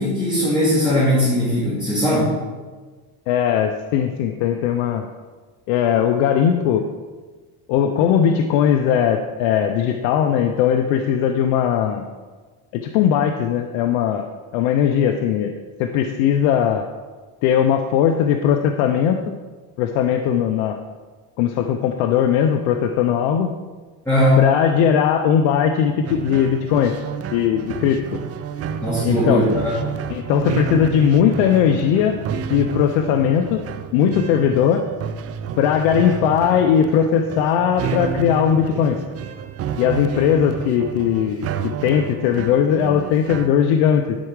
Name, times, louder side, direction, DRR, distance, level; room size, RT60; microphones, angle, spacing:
voice 1, 0.0-2.3 24.1-24.4 28.8-29.6, equal, 5° left, -9 dB, 2.6 m, -19 dB
voice 2, 3.3-5.1 5.7-6.9 7.7-12.1 12.7-14.3 14.5-15.5 15.8-16.9 17.4-19.3 19.8-20.8 21.4-23.5 24.4-26.9 27.3-28.2 29.0-29.4 30.1-32.1 32.5-33.6 33.9-34.8 35.6-39.0 39.8-44.2, left 8 dB, 70° left, 6 dB, 0.7 m, -19 dB
sound 1, 26.0-43.5, right 7 dB, 30° right, 0.5 m, -30 dB
11.5 x 4.8 x 4.8 m, 1.4 s
supercardioid pair, 120°, 47 cm